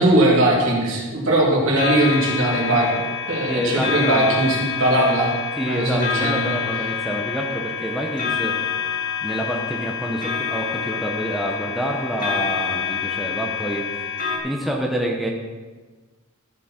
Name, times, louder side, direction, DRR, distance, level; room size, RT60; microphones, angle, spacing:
voice 1, 0.0-2.9 3.3-6.6, right 1 dB, 60° right, -4 dB, 3.0 m, -20 dB
sound 1, 1.8-14.4, left 7 dB, 40° left, 2.1 m, -27 dB
voice 2, 3.5-4.4 5.6-8.5 9.2-15.3, equal, ahead, -1 dB, 0.8 m, -27 dB
13.5 x 7.1 x 4.4 m, 1.3 s
head